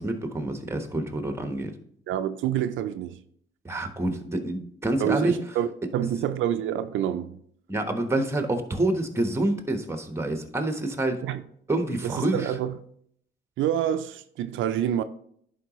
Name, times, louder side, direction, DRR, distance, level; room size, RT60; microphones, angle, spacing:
voice 1, 0.0-1.7 3.6-5.4 7.7-11.2 11.7-12.5, right 1 dB, 15° right, 1.2 m, -27 dB
voice 2, 2.1-3.2 5.0-7.4 8.2-8.3 11.2-11.4 12.0-12.8 13.6-15.0, right 10 dB, 80° right, 0.5 m, -27 dB
11.0 x 4.9 x 3.1 m
cardioid pair, 90°, 20 cm